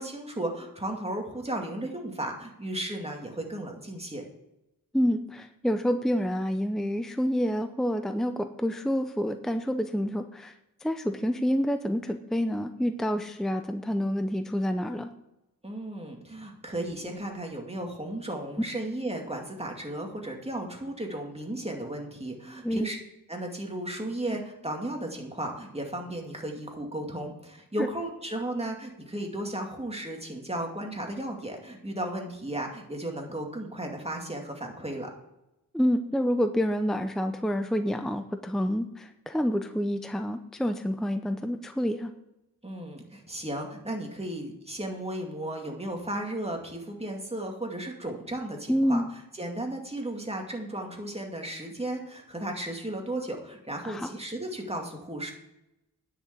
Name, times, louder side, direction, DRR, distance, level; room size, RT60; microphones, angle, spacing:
voice 1, 0.0-4.2 15.6-23.0 23.3-35.1 42.6-55.3, right 1 dB, 15° right, 1 dB, 2.3 m, -35 dB
voice 2, 4.9-10.5 10.8-15.1 22.6-22.9 27.8-27.9 35.7-42.1 48.7-49.1 53.8-54.1, equal, ahead, 8 dB, 0.6 m, -28 dB
10.0 x 6.7 x 8.0 m, 0.90 s
wide cardioid pair, 95°, 35 cm